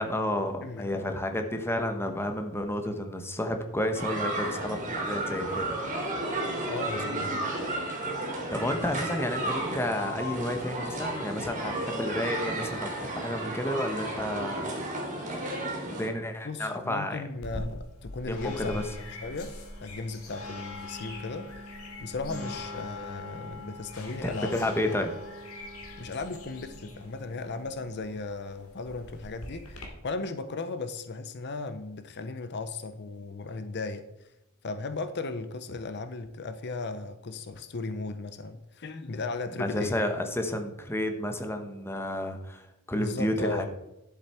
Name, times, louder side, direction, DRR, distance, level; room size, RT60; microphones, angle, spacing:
voice 1, 0.0-5.8 8.5-14.7 15.9-17.2 18.3-18.9 22.3-22.5 24.2-25.1 39.6-42.6 42.9-43.7, left 1 dB, 10° left, 5 dB, 1.1 m, -31 dB
voice 2, 0.6-1.1 6.7-7.5 16.4-18.8 19.1-19.5 19.8-25.0 26.0-34.3 34.6-40.0 42.9-43.7, left 3 dB, 55° left, 10 dB, 0.7 m, -36 dB
sound 1, 3.9-16.1, right 1 dB, 35° right, 3.1 m, -33 dB
sound 2, 17.4-29.9, left 2 dB, 75° left, 2.5 m, -42 dB
11.5 x 7.5 x 4.4 m, 0.92 s
head